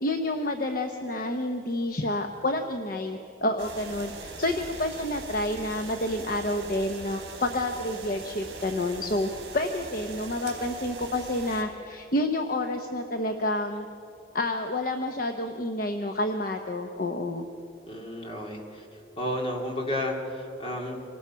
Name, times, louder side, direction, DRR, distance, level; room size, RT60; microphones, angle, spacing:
voice 1, 0.0-9.3 9.5-13.9 14.3-17.5, left 1 dB, 50° left, 5 dB, 0.9 m, -29 dB
sound 1, 3.6-11.6, right 3 dB, 60° right, 3.9 m, -41 dB
voice 2, 17.9-21.0, left 1 dB, 30° left, 0 dB, 2.5 m, -32 dB
25.5 x 19.0 x 5.7 m, 2.9 s
head